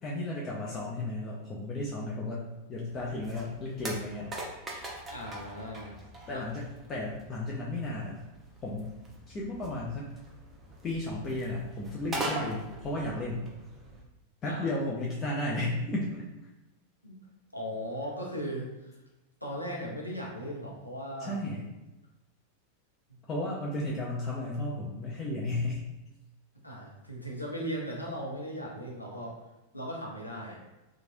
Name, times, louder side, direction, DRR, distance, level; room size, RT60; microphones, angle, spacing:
voice 1, 0.0-4.3 4.7-4.9 6.3-8.2 8.6-8.9 9.3-10.1 10.8-13.4 14.4-16.3 21.2-21.6 23.3-25.9, left 1 dB, 25° left, -4 dB, 0.5 m, -34 dB
sound 1, 2.9-14.0, right 1 dB, 15° right, 0.7 m, -42 dB
voice 2, 5.1-5.9 6.3-6.4 14.5-14.7 17.0-17.1 17.5-18.9 19.4-21.4 26.6-29.3 29.7-30.6, equal, 85° left, -3 dB, 0.7 m, -37 dB
3.1 x 2.4 x 2.6 m, 1.0 s
figure-of-eight pair, 90°, 0 cm